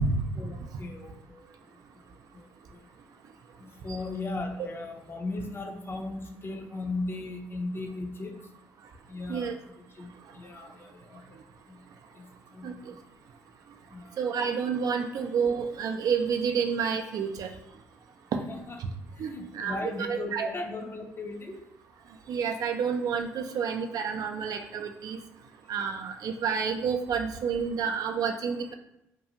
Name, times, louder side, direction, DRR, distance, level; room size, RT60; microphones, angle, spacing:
voice 1, 0.4-1.8 2.3-2.9 3.6-8.3 9.1-11.4 11.7-11.8 12.1-13.0 13.9-14.2 18.5-18.8 19.2-21.7, left 2 dB, 35° left, 4 dB, 0.6 m, -37 dB
voice 2, 12.6-12.9 14.2-17.5 18.8-18.9 19.2-20.5 22.3-25.2 25.7-28.7, right 6 dB, 60° right, 4 dB, 0.3 m, -29 dB
2.7 x 2.3 x 2.7 m, 0.83 s
hypercardioid pair, 50°, 7 cm